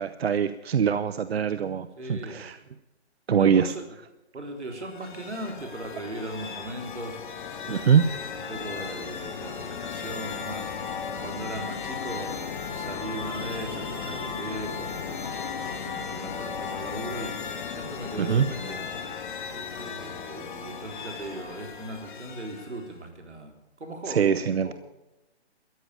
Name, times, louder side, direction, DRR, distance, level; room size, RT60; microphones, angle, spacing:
voice 1, 0.0-2.6 3.3-3.7 7.7-8.1 18.2-18.5 24.1-24.7, right 7 dB, 65° right, 13 dB, 0.7 m, -23 dB
voice 2, 2.0-2.4 3.4-3.8 4.3-7.2 7.6-10.8 11.2-12.3 12.7-19.0 19.5-24.3 24.6-24.7, right 1 dB, 90° right, 3 dB, 3.9 m, -38 dB
sound 1, 4.7-22.9, left 6 dB, 45° left, 2.1 m, -36 dB
14.0 x 9.9 x 8.8 m, 0.99 s
hypercardioid pair, 160°, 34 cm